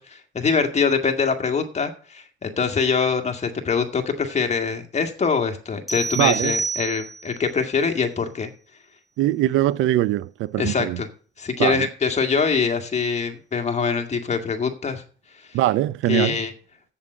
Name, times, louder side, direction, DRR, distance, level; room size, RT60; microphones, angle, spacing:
voice 1, 0.0-8.5 10.6-11.1 11.4-15.0 16.1-16.5, left 5 dB, 35° left, 1.9 m, -24 dB
sound 1, 5.9-7.4, right 3 dB, ahead, 2.6 m, -28 dB
voice 2, 6.2-6.6 9.2-11.0 11.6-11.9 15.5-16.4, right 15 dB, 85° right, 0.5 m, -22 dB
7.8 x 7.2 x 7.5 m
cardioid pair, 90°, 20 cm